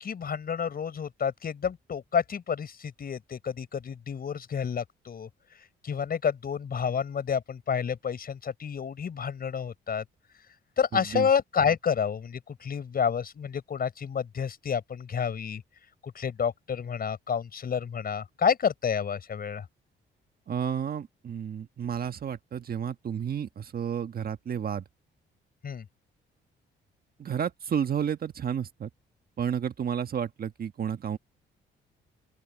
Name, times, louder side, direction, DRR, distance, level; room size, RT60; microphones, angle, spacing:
voice 1, 0.0-5.3 5.8-10.0 10.8-15.6 16.2-19.6 25.6-25.8, left 7 dB, 50° left, 5.3 m, -29 dB
voice 2, 10.9-11.3 20.5-24.8 27.2-28.9 29.4-31.2, right 8 dB, 50° right, 1.5 m, -31 dB
open air
cardioid pair, 90°, 20 cm